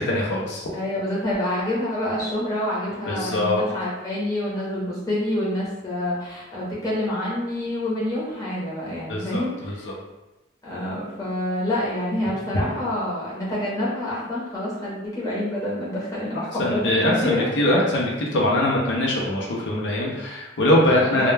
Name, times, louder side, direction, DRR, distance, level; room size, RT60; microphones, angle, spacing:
voice 1, 0.0-0.7 3.1-3.6 9.1-9.9 16.6-21.3, left 1 dB, 70° left, -3 dB, 0.5 m, -22 dB
voice 2, 0.7-9.9 10.6-16.8 17.2-17.5 20.9-21.1, left 1 dB, 20° left, -8 dB, 0.7 m, -27 dB
2.2 x 2.1 x 3.1 m, 1.0 s
head